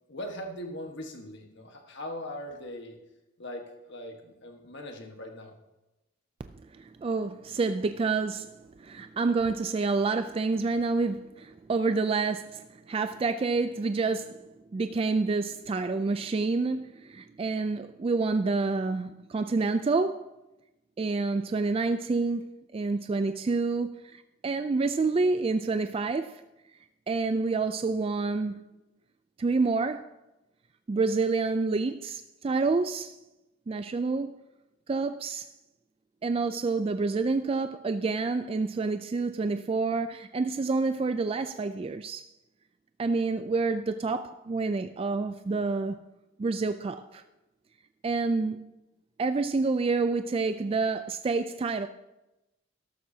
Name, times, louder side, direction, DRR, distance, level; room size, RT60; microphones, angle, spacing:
voice 1, 0.1-3.0 3.4-5.6, left 1 dB, 60° left, 1.4 m, -40 dB
voice 2, 6.4-20.3 21.0-26.4 27.1-28.6 29.4-30.1 30.9-33.2 33.7-34.3 34.9-35.5 36.2-42.3 43.0-46.0 46.4-47.2 48.0-48.7 49.2-51.9, right 3 dB, 30° right, 0.3 m, -28 dB
13.5 x 12.0 x 2.8 m
head